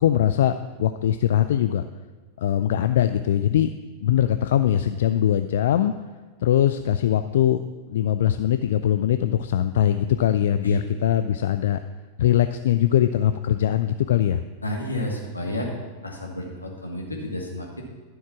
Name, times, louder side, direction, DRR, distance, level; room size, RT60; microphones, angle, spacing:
voice 1, 0.0-1.8 2.4-3.7 4.0-5.9 6.4-7.6 7.9-11.8 12.2-14.4, left 11 dB, 60° left, 11 dB, 0.4 m, -21 dB
voice 2, 14.6-15.7 16.0-17.8, left 1 dB, 80° left, 0 dB, 2.2 m, -31 dB
12.0 x 7.2 x 6.0 m, 1.4 s
figure-of-eight pair, 90°, 0 cm